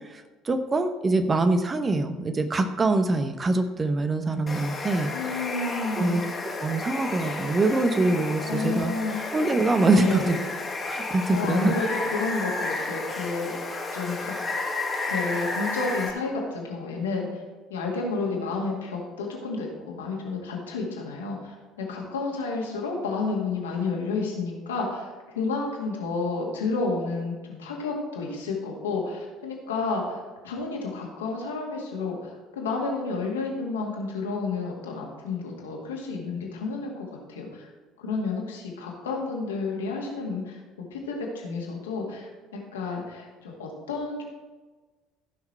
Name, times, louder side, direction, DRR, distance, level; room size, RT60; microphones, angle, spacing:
voice 1, 0.1-5.4 6.0-8.9 9.3-10.4 10.9-11.8, right 2 dB, 30° right, 8 dB, 1.0 m, -24 dB
Water, 4.5-16.1, left 3 dB, 25° left, 1.8 m, -32 dB
voice 2, 5.1-6.2 8.4-9.2 9.9-10.3 11.3-13.5 13.9-14.3 15.1-17.4 17.7-37.7 38.0-40.6 40.9-44.2, left 3 dB, 75° left, -1 dB, 2.2 m, -31 dB
15.0 x 5.9 x 4.5 m, 1.3 s
figure-of-eight pair, 60°, 0 cm